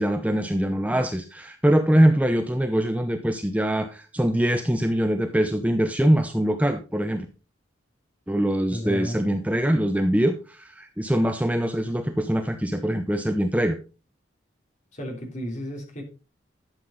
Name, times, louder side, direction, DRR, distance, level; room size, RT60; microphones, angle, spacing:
voice 1, 0.0-7.3 8.3-13.8, right 1 dB, 5° right, 7 dB, 0.6 m, -23 dB
voice 2, 8.7-9.4 14.9-16.0, equal, 35° left, 1 dB, 3.4 m, -33 dB
12.0 x 7.5 x 3.9 m, 0.33 s
head